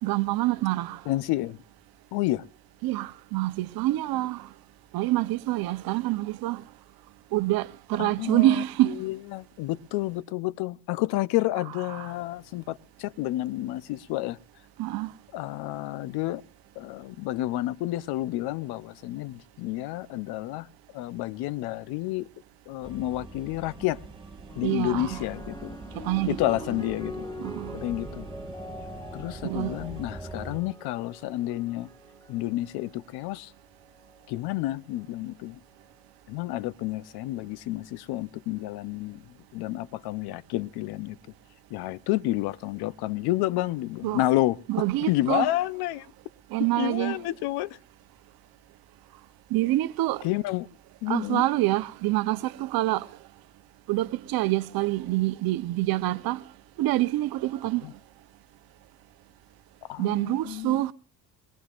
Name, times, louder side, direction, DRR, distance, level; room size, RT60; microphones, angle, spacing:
voice 1, 0.0-1.0 2.8-4.5 4.9-6.6 7.3-9.0 11.9-12.1 14.8-15.1 24.6-25.2 25.9-26.4 27.4-27.7 29.4-29.8 44.0-44.2 44.7-45.5 46.5-47.2 49.5-50.3 51.1-53.1 53.9-56.4 56.8-57.8 60.0-60.9, right 17 dB, 70° right, 0.9 m, -26 dB
voice 2, 1.1-1.6 2.1-2.4 8.0-8.5 8.9-14.4 15.3-16.4 16.8-20.7 20.9-22.3 22.7-24.0 24.6-25.8 26.3-27.3 27.7-28.3 29.1-31.9 32.3-33.5 34.3-35.6 36.3-39.2 39.5-41.2 41.7-44.6 45.1-46.1 46.8-47.8 50.2-50.7 51.0-51.4 57.8-57.9 59.9-60.8, left 16 dB, 90° left, 0.8 m, -30 dB
sound 1, 22.8-30.6, right 3 dB, 15° right, 2.0 m, -43 dB
sound 2, 24.5-33.1 34.0-34.4, left 1 dB, 10° left, 1.4 m, -43 dB
23.0 x 20.5 x 2.5 m
cardioid pair, 145°, 37 cm